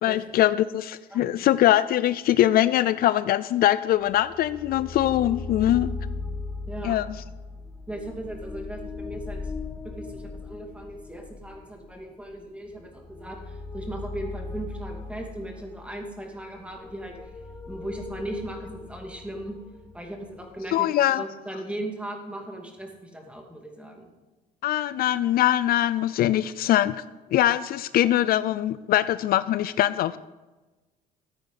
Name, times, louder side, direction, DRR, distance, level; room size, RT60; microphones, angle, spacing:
voice 1, 0.0-5.9 6.8-7.1 20.7-21.2 24.6-27.0 27.3-30.2, left 13 dB, 65° left, 15 dB, 0.4 m, -22 dB
sound 1, 4.0-20.7, left 3 dB, 15° left, 1.2 m, -38 dB
voice 2, 6.7-7.0 7.9-9.4 9.8-17.3 17.7-19.6 19.9-24.1, right 1 dB, 5° right, 2 dB, 2.5 m, -37 dB
14.0 x 9.1 x 5.7 m, 1.2 s
cardioid pair, 110°, 17 cm